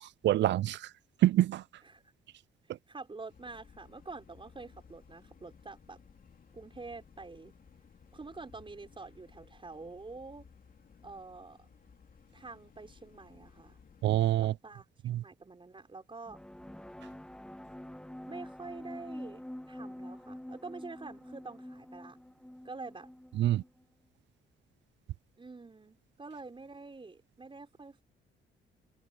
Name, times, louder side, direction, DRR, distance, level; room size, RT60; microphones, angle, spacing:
voice 1, 0.0-0.9 1.2-1.6 14.0-14.5 15.0-15.2 23.4-23.6, right 13 dB, 65° right, 0.4 m, -26 dB
voice 2, 2.9-6.0 6.5-7.5 8.1-10.5 11.0-11.6 12.3-13.8 14.4-14.9 15.2-16.4 18.3-19.4 19.7-22.2 22.6-23.1 25.4-28.0, right 3 dB, 25° right, 5.6 m, -47 dB
sound 1, 3.3-14.1, left 6 dB, 45° left, 2.6 m, -59 dB
sound 2, 16.3-23.8, left 1 dB, 5° left, 1.1 m, -46 dB
cardioid pair, 85°, 20 cm